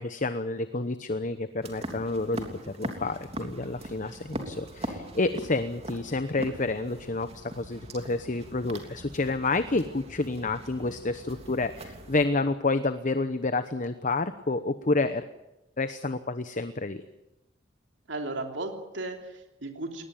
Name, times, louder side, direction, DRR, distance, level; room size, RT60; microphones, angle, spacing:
voice 1, 0.0-15.2 15.8-17.0, left 3 dB, 45° left, 11 dB, 1.0 m, -29 dB
sound 1, 1.6-12.2, right 1 dB, 35° right, 3.3 m, -41 dB
voice 2, 18.1-20.0, right 2 dB, 75° right, 3 dB, 3.2 m, -35 dB
21.0 x 19.5 x 9.2 m, 0.94 s
head